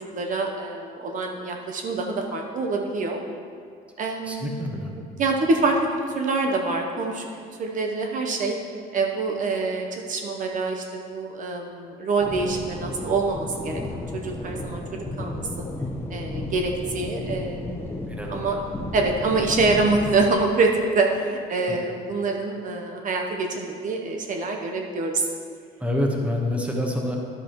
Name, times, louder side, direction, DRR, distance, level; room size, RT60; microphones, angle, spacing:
voice 1, 0.1-3.2 4.0-4.5 5.2-7.3 7.6-8.5 8.9-14.8 15.2-15.4 16.1-18.6 18.9-25.2, right 3 dB, 50° right, 2 dB, 0.8 m, -25 dB
voice 2, 4.3-4.9 18.2-18.5 21.7-21.8 25.8-27.2, left 1 dB, 5° right, 0 dB, 1.1 m, -26 dB
sound 1, 12.2-20.4, left 1 dB, 15° left, 1.0 m, -33 dB
11.0 x 7.9 x 3.0 m, 2.3 s
cardioid pair, 110°, 17 cm